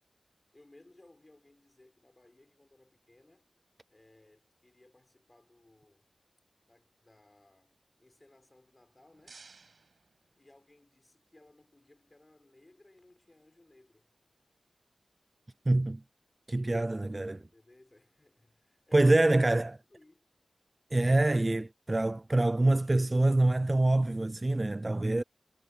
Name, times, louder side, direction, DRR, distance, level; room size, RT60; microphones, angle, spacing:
voice 1, 0.5-3.5 3.9-6.1 6.7-9.5 10.3-14.1 16.9-20.3, left 2 dB, 30° left, 5.5 m, -61 dB
sound 1, 8.7-10.9, right 4 dB, 70° right, 6.6 m, -58 dB
voice 2, 15.7-16.0 16.5-17.4 18.9-19.7 20.9-25.2, right 2 dB, 30° right, 0.4 m, -25 dB
wide cardioid pair, 75°, 0 cm